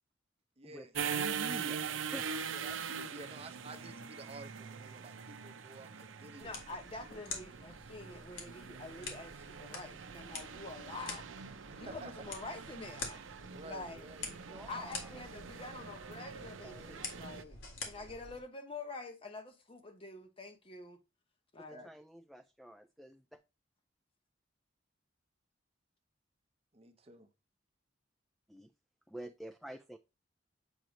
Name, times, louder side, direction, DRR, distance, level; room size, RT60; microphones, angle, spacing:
voice 1, 0.6-0.9 2.5-6.8 11.7-12.1 13.5-14.7 21.7-21.9 26.7-27.3, right 2 dB, 30° right, 0.7 m, -52 dB
sound 1, 0.9-17.4, right 6 dB, 90° right, 0.6 m, -43 dB
voice 2, 1.1-2.6 14.3-15.1 16.6-17.0 21.6-23.4 28.5-28.7 29.1-30.0, equal, ahead, 0.3 m, -49 dB
sound 2, 6.4-18.4, left 4 dB, 80° left, 2.0 m, -48 dB
voice 3, 6.4-13.3 13.6-14.1 14.7-21.0 21.5-21.9, left 3 dB, 30° left, 0.8 m, -47 dB
7.9 x 3.0 x 5.0 m
head